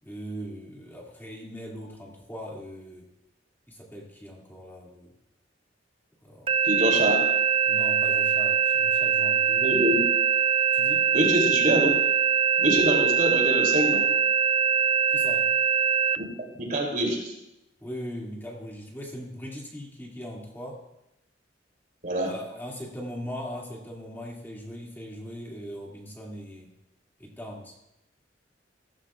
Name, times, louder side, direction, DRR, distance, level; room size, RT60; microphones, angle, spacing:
voice 1, 0.0-3.1 3.7-5.1 6.2-6.5 6.9-7.0 7.7-9.7 10.7-11.1 15.1-15.5 17.8-20.8 22.3-26.7 27.2-27.7, equal, 10° left, -3 dB, 2.5 m, -39 dB
sound 1, 6.5-16.2, right 7 dB, 30° right, 0.3 m, -23 dB
voice 2, 6.6-7.2 9.6-10.0 11.1-11.9 12.6-14.1 16.2-16.3 16.6-17.3 22.0-22.3, right 1 dB, 50° right, -1 dB, 3.2 m, -25 dB
16.5 x 14.5 x 2.5 m, 0.87 s
head